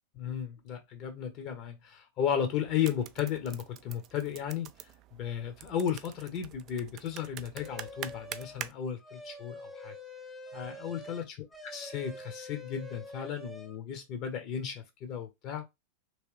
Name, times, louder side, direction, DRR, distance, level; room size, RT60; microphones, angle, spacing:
voice 1, 0.2-9.9 10.5-11.4 11.6-15.7, left 9 dB, 40° left, 0.8 m, -34 dB
sound 1, 2.7-8.7, right 11 dB, 35° right, 0.3 m, -46 dB
sound 2, 7.6-8.6 9.0-13.8, left 1 dB, ahead, 0.8 m, -46 dB
3.1 x 3.1 x 3.1 m
figure-of-eight pair, 90°, 0 cm